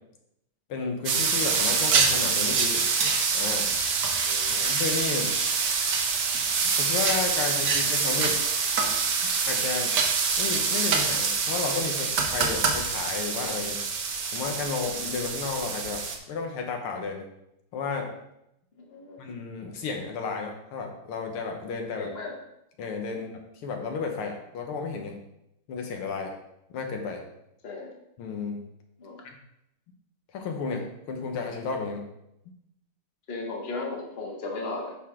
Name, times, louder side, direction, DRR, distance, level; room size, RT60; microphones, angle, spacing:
voice 1, 0.7-2.8 3.3-3.7 4.5-5.3 6.8-8.4 9.5-9.9 10.4-13.8 14.3-16.0 16.3-17.2 17.7-18.1 19.2-22.1 22.8-23.3 23.6-25.2 25.7-26.3 26.7-27.2 28.2-28.6 29.2-29.4 30.3-32.0, left 4 dB, 80° left, 3 dB, 1.9 m, -32 dB
sound 1, 1.1-16.2, right 5 dB, 60° right, 1.4 m, -25 dB
voice 2, 4.2-4.7 18.8-19.2 22.0-22.3 23.1-23.2 27.6-27.9 29.0-29.2 33.3-34.9, left 3 dB, 30° left, 0 dB, 1.4 m, -36 dB
11.0 x 4.8 x 3.7 m, 0.82 s
omnidirectional pair, 2.4 m